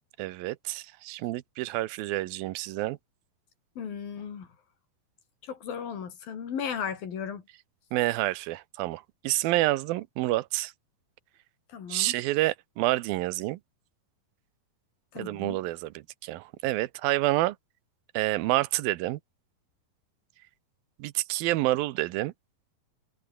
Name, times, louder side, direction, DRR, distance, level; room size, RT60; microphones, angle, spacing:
voice 1, 0.2-3.0 7.9-10.7 11.9-13.6 15.2-17.6 18.1-19.2 21.0-22.3, right 17 dB, 90° right, 2.6 m, -28 dB
voice 2, 3.8-4.5 5.4-7.4 11.7-12.1 15.1-15.6, left 7 dB, 80° left, 5.2 m, -35 dB
omnidirectional pair, 4.1 m